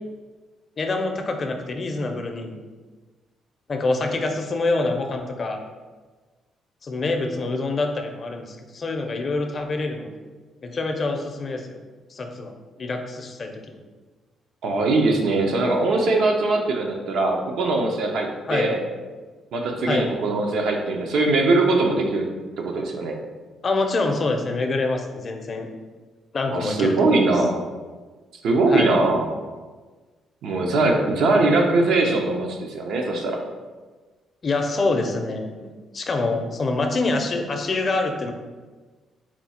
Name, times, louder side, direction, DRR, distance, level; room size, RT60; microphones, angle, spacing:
voice 1, 0.8-2.6 3.7-5.6 6.8-10.1 10.6-11.8 12.1-12.5 12.8-13.8 18.4-18.7 19.9-20.1 23.6-25.7 26.3-27.2 28.7-29.0 34.4-35.7 35.9-38.3, left 3 dB, 40° left, 4 dB, 0.5 m, -26 dB
voice 2, 14.6-18.8 19.5-22.3 22.6-23.2 26.5-27.6 28.4-29.3 30.4-33.4, right 2 dB, 75° right, 2 dB, 0.6 m, -21 dB
4.4 x 2.3 x 4.2 m, 1.3 s
cardioid pair, 90°, 0 cm